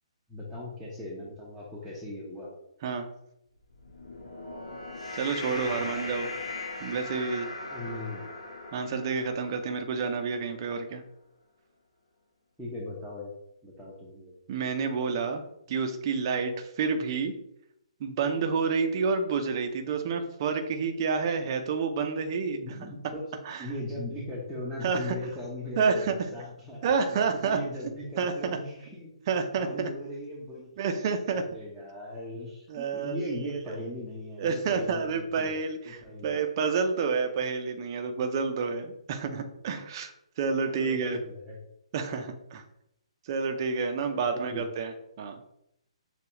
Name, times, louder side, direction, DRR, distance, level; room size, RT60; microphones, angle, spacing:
voice 1, 0.3-2.5 5.7-6.1 7.7-8.2 12.6-13.3 13.6-14.3 22.6-23.2 23.6-26.8 27.1-29.1 29.6-30.7 31.3-36.4 40.8-41.6 44.1-44.6, left 1 dB, 5° right, -8 dB, 0.9 m, -39 dB
sound 1, 3.7-10.3, left 2 dB, 75° left, 1.0 m, -39 dB
voice 2, 5.1-6.3 6.8-7.5 8.7-11.0 14.5-17.3 18.0-22.6 23.4-23.7 24.8-25.1 25.8-26.2 26.8-27.6 28.2-28.6 29.3-29.9 30.8-31.4 32.7-33.8 34.4-40.1 40.4-41.2 41.9-42.6 43.2-45.4, right 5 dB, 40° right, 5 dB, 0.7 m, -29 dB
6.7 x 2.4 x 3.1 m, 0.78 s
hypercardioid pair, 140°, 3 cm